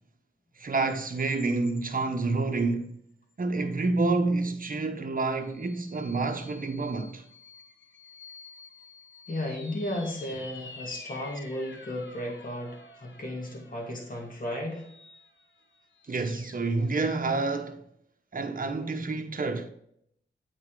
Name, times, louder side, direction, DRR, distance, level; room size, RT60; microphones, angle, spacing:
voice 1, 0.6-3.0 3.4-7.2 16.1-17.8 18.3-19.7, right 3 dB, 45° right, 1.0 m, -28 dB
sound 1, 0.9-2.8 3.3-3.4 5.4-17.1, left 4 dB, 60° left, 1.0 m, -50 dB
voice 2, 9.3-14.9, left 1 dB, 40° left, 2.0 m, -34 dB
8.4 x 4.2 x 3.8 m
cardioid pair, 50°, 21 cm